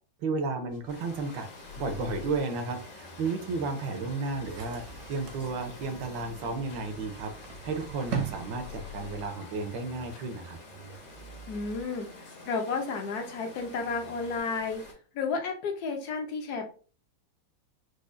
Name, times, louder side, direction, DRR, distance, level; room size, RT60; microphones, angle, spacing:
voice 1, 0.2-1.5 1.8-4.8 5.1-7.3 7.6-10.6, right 3 dB, 75° right, 6 dB, 1.4 m, -33 dB
sound 1, 0.7-14.4, left 4 dB, 80° left, 1.6 m, -50 dB
Water, 0.9-14.9, left 2 dB, 40° left, 0.8 m, -48 dB
sound 2, 4.4-9.4, right 7 dB, 55° right, 0.9 m, -40 dB
voice 2, 11.5-12.1 12.5-14.8 15.1-16.7, left 4 dB, 65° left, 3 dB, 1.1 m, -32 dB
4.8 x 2.4 x 2.5 m, 0.38 s
omnidirectional pair, 2.1 m